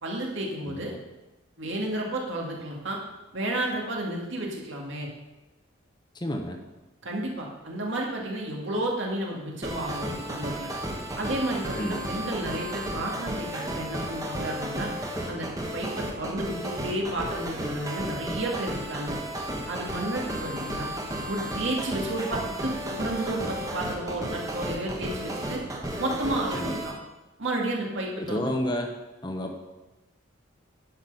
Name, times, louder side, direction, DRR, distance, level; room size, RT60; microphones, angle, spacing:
voice 1, 0.0-0.9 1.6-3.0 3.3-5.1 7.0-10.7 11.2-14.9 15.3-19.2 19.7-20.9 21.3-25.6 26.0-26.9 27.4-28.5, right 1 dB, 70° right, -1 dB, 2.1 m, -32 dB
voice 2, 0.6-1.0 6.1-6.6 11.8-12.0 26.5-26.8 28.2-28.9 29.2-29.6, equal, 20° left, 4 dB, 0.9 m, -30 dB
sound 1, 9.6-26.9, right 1 dB, 15° right, 1.0 m, -33 dB
10.5 x 6.1 x 5.4 m, 1.1 s
head